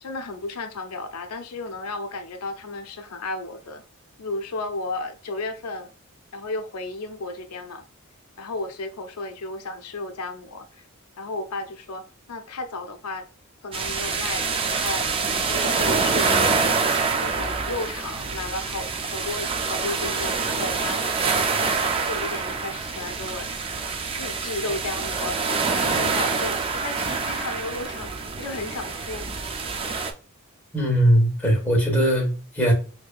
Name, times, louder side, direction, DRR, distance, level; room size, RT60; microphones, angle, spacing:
voice 1, 0.0-3.9 4.2-5.9 6.3-7.8 8.4-10.8 11.2-13.3 13.6-15.1 15.4-16.4 17.2-21.4 22.1-23.5 24.2-28.1 28.4-29.3, left 2 dB, 90° left, 0.5 m, -33 dB
sound 1, 13.7-30.1, right 4 dB, 25° right, 0.4 m, -26 dB
voice 2, 30.7-32.7, equal, 10° left, 1.3 m, -20 dB
4.5 x 2.7 x 2.3 m
head